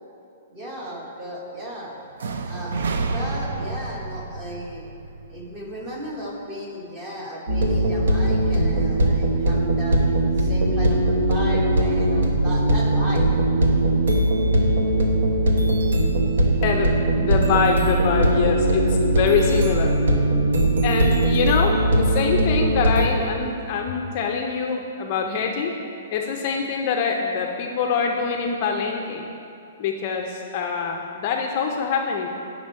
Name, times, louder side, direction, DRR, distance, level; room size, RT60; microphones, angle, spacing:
voice 1, 0.5-1.9 2.4-4.8 5.3-13.3, equal, 20° right, -2 dB, 1.0 m, -35 dB
sound 1, 2.2-6.1, right 3 dB, 65° right, 0.5 m, -30 dB
sound 2, 7.5-23.1, right 1 dB, 85° right, 1.1 m, -20 dB
voice 2, 16.6-19.9 20.8-25.7 26.1-29.3 29.8-32.3, left 5 dB, 30° left, 2 dB, 0.4 m, -24 dB
8.9 x 6.1 x 4.4 m, 2.7 s
hypercardioid pair, 180°, 0 cm